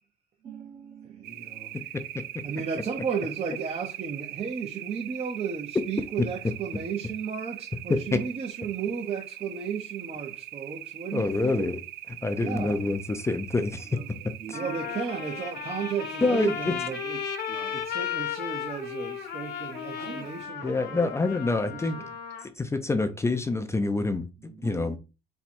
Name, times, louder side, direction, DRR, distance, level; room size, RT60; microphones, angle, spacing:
voice 1, 0.4-2.2 13.8-14.9 17.5-17.8 19.9-20.7 24.4-25.0, right 6 dB, 55° right, 1.4 m, -45 dB
voice 2, 1.0-1.8 2.4-11.7 12.4-12.8 14.5-17.3 17.7-21.1 21.6-22.1, right 6 dB, 35° right, 0.8 m, -34 dB
sound 1, 1.2-20.4, right 14 dB, 70° right, 0.4 m, -42 dB
voice 3, 11.1-11.8 12.2-14.0 14.5-14.6 16.2-16.7 20.6-22.0 22.6-25.0, left 3 dB, 15° left, 0.5 m, -27 dB
Trumpet, 13.8-13.9 14.5-22.5, left 9 dB, 70° left, 1.0 m, -35 dB
4.4 x 2.3 x 4.2 m
cardioid pair, 110°, 17 cm